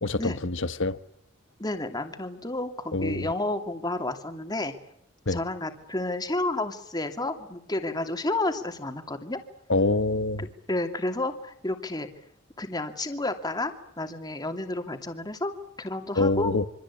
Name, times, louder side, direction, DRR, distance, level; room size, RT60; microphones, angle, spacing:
voice 1, 0.0-1.0 2.9-3.3 5.3-5.4 9.7-10.5 16.2-16.6, left 2 dB, 60° left, 1.3 m, -25 dB
voice 2, 1.6-4.7 5.3-9.4 10.4-12.1 12.6-13.7 14.0-15.5 15.8-16.5, left 2 dB, 20° left, 2.6 m, -31 dB
26.5 x 25.0 x 8.6 m
head